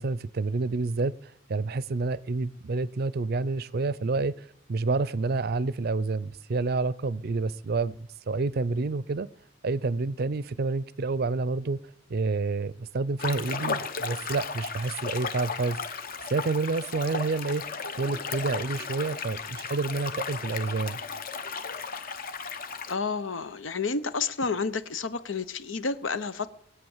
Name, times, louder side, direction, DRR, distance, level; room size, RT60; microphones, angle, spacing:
voice 1, 0.0-9.3 9.6-11.8 12.1-15.8 16.3-17.6 18.0-21.0, right 3 dB, 55° right, 0.5 m, -29 dB
sound 1, 13.2-22.9, left 5 dB, 50° left, 1.0 m, -35 dB
voice 2, 22.9-26.5, left 4 dB, 90° left, 0.9 m, -30 dB
20.5 x 8.5 x 7.2 m
head